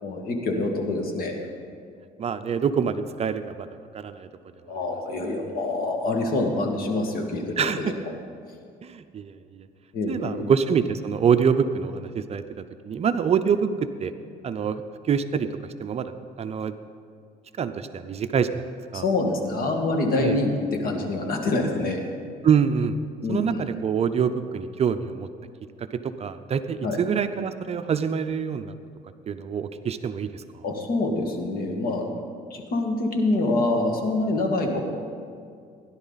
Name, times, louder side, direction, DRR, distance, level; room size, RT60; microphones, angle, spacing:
voice 1, 0.0-1.4 4.7-8.0 9.9-10.5 18.9-22.0 23.2-23.6 26.8-27.0 30.6-32.1 32.5-34.8, left 2 dB, 60° left, 2 dB, 2.0 m, -26 dB
voice 2, 2.2-4.3 7.6-7.9 8.8-9.7 10.1-14.1 14.4-16.8 17.6-19.1 20.2-20.4 22.4-23.0 23.3-25.3 25.8-28.7 29.3-30.6, right 7 dB, 40° right, 10 dB, 0.5 m, -26 dB
17.0 x 11.0 x 4.1 m, 2.3 s
cardioid pair, 110°, 17 cm